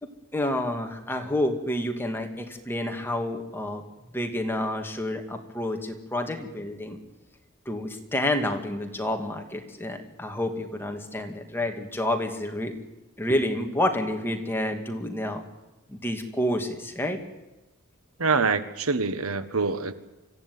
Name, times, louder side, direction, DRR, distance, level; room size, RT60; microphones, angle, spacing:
voice 1, 0.0-3.8 4.1-7.0 7.7-12.8 13.2-15.4 15.9-17.2, left 1 dB, 10° left, 4 dB, 2.3 m, -29 dB
voice 2, 18.2-19.9, right 4 dB, 75° right, 12 dB, 1.4 m, -25 dB
25.0 x 15.5 x 9.5 m, 1.1 s
head